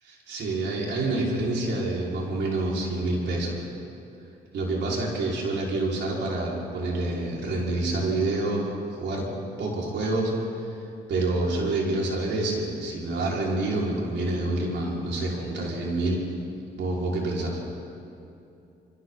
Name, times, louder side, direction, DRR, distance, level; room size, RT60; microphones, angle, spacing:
voice 1, 0.1-3.7 4.5-9.3 9.6-10.7 11.1-16.2 16.8-17.6, right 2 dB, 70° right, -4 dB, 5.8 m, -27 dB
28.0 x 23.0 x 4.3 m, 2.7 s
cardioid pair, 80°, 19 cm